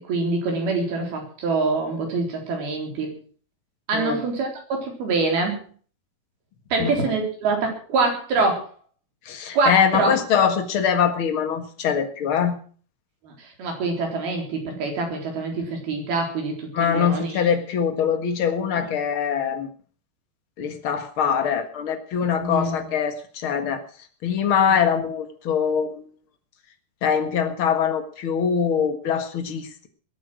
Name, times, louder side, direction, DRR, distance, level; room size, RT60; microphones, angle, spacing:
voice 1, 0.1-3.2 3.9-5.6 6.7-8.7 9.5-10.2 13.2-17.4 18.7-18.9 22.4-22.8, right 3 dB, 70° right, 2 dB, 5.8 m, -25 dB
voice 2, 9.2-12.6 16.7-19.7 20.6-23.8 24.2-26.0 27.0-29.9, left 7 dB, 45° left, 8 dB, 1.8 m, -23 dB
22.0 x 8.8 x 6.2 m, 0.42 s
omnidirectional pair, 4.5 m